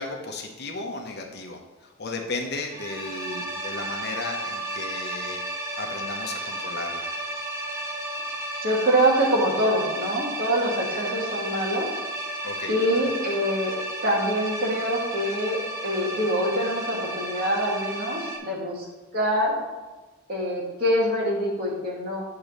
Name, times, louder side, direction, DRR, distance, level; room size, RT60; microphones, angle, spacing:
voice 1, 0.0-5.4 5.8-7.1 12.4-12.7, left 3 dB, 50° left, 3 dB, 1.0 m, -34 dB
sound 1, 2.6-18.4, right 1 dB, 15° right, 1.0 m, -33 dB
voice 2, 8.6-11.9 12.7-13.7 14.0-18.9 19.1-19.6 20.3-22.2, equal, 45° right, -3 dB, 2.1 m, -25 dB
9.0 x 3.8 x 6.6 m, 1.2 s
head